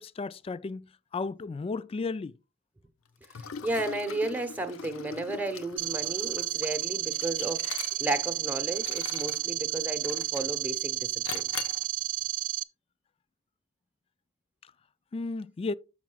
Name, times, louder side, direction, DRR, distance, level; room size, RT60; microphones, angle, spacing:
voice 1, 0.0-2.3 14.6-14.7 15.1-15.7, left 3 dB, 30° left, 0.3 m, -34 dB
Liquid, 3.2-8.3 8.7-9.4 10.0-10.6 11.2-11.8, left 7 dB, 80° left, 0.7 m, -41 dB
voice 2, 3.3-11.4, right 2 dB, 10° right, 0.9 m, -33 dB
sound 1, 5.8-12.6, right 13 dB, 40° right, 0.4 m, -32 dB
13.0 x 5.8 x 2.3 m
head